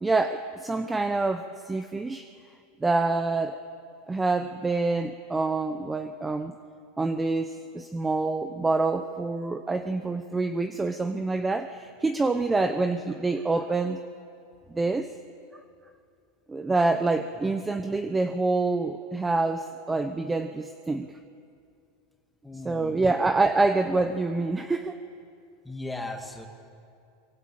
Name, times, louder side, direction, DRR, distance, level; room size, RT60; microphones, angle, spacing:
voice 1, 0.0-2.3 2.8-3.6 4.1-6.5 7.0-14.0 14.7-15.1 16.5-21.2 22.6-25.0, right 3 dB, 10° right, 9 dB, 0.9 m, -26 dB
voice 2, 22.4-23.0 25.6-26.5, left 2 dB, 5° left, 3 dB, 2.5 m, -37 dB
23.5 x 23.0 x 8.8 m, 2.4 s
supercardioid pair, 140°, 0 cm